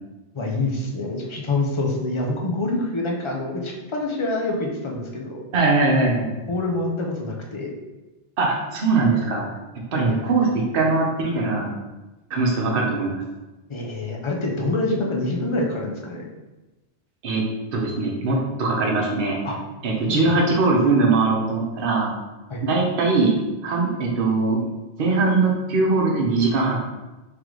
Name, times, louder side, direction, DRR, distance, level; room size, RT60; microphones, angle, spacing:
voice 1, 0.3-5.4 6.5-7.7 9.9-10.2 13.7-16.2 19.4-19.5 20.1-20.3 22.5-22.6, left 2 dB, 35° left, -1 dB, 0.5 m, -26 dB
voice 2, 5.5-6.5 8.4-9.4 9.9-11.7 12.3-13.2 17.2-17.4 17.7-19.4 19.8-22.1 22.6-23.3 23.6-24.6 25.0-26.8, right 3 dB, 55° right, -1 dB, 0.9 m, -21 dB
3.7 x 3.3 x 3.1 m, 1.1 s
omnidirectional pair, 1.1 m